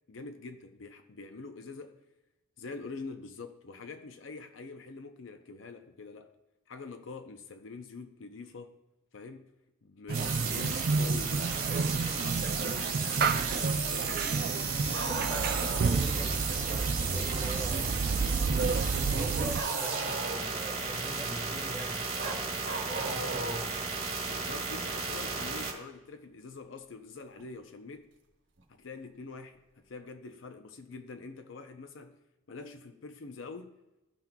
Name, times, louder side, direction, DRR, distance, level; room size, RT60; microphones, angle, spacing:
voice 1, 0.1-2.0 2.6-6.3 6.7-8.8 9.1-9.5 9.8-13.1 13.9-14.5 24.3-28.1 28.7-32.2 32.5-33.7, left 4 dB, 90° left, 0.6 m, -45 dB
sound 1, 10.1-25.7, right 5 dB, 35° right, 1.3 m, -34 dB
sound 2, 10.1-19.6, right 4 dB, 50° right, 0.3 m, -30 dB
voice 2, 10.2-10.5 14.9-18.4 19.0-23.8, equal, 20° left, 1.5 m, -43 dB
Bark, 14.9-16.0 19.5-20.6 22.2-23.7 25.4-25.5 27.4-27.5 28.6-28.7, right 3 dB, 85° right, 1.0 m, -37 dB
13.5 x 5.8 x 2.3 m
head